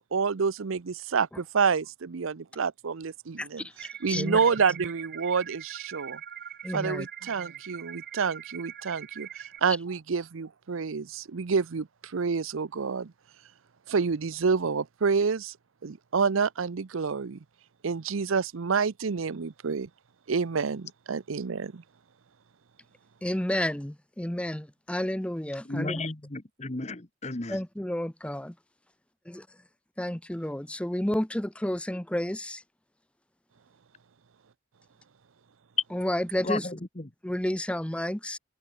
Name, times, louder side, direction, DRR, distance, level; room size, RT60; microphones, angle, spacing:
voice 1, 0.0-6.2 6.7-13.1 13.9-15.5 15.8-17.4 17.8-19.9 20.3-21.8, right 5 dB, 85° right, 0.6 m, -28 dB
voice 2, 3.4-4.4 6.6-7.1 23.2-25.9 27.5-28.5 29.3-29.4 30.0-32.6 35.9-36.7 37.2-38.4, left 1 dB, 5° left, 0.6 m, -31 dB
sound 1, 3.8-9.6, right 9 dB, 50° right, 5.6 m, -42 dB
voice 3, 25.6-27.6 36.4-37.1, left 2 dB, 35° left, 1.3 m, -34 dB
open air
head